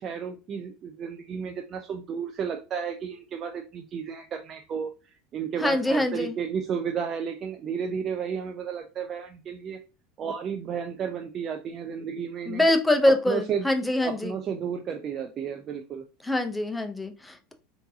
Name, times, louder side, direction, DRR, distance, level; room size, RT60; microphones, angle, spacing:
voice 1, 0.0-9.8 10.2-12.6 13.1-13.7 14.0-16.0, right 7 dB, 40° right, 0.4 m, -33 dB
voice 2, 5.6-6.3 12.5-14.3 16.2-17.5, left 1 dB, 10° left, 0.6 m, -24 dB
3.7 x 2.6 x 2.7 m
hypercardioid pair, 85°, 0 cm